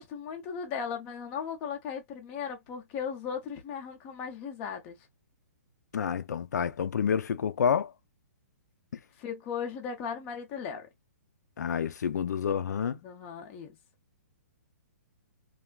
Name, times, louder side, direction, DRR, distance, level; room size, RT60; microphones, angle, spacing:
voice 1, 0.0-5.0 9.2-10.9 13.0-13.8, left 7 dB, 15° left, 0.4 m, -37 dB
voice 2, 5.9-7.9 11.6-13.0, left 7 dB, 85° left, 0.4 m, -28 dB
3.2 x 2.3 x 2.2 m
hypercardioid pair, 180°, 9 cm